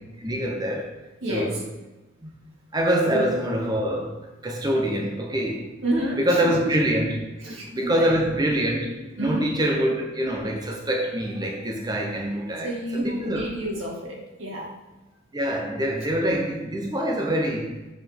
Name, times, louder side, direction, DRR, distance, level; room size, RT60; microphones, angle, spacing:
voice 1, 0.2-0.9 1.3-1.6 2.2-2.3 2.7-4.1 4.4-5.7 6.2-7.2 7.5-13.4 15.3-17.7, right 1 dB, 20° right, 1 dB, 0.9 m, -25 dB
voice 2, 1.2-1.6 3.1-3.2 5.8-6.7 7.4-8.2 9.2-9.5 12.6-14.7, right 1 dB, 80° right, -2 dB, 2.3 m, -29 dB
7.6 x 5.2 x 5.3 m, 1.1 s
head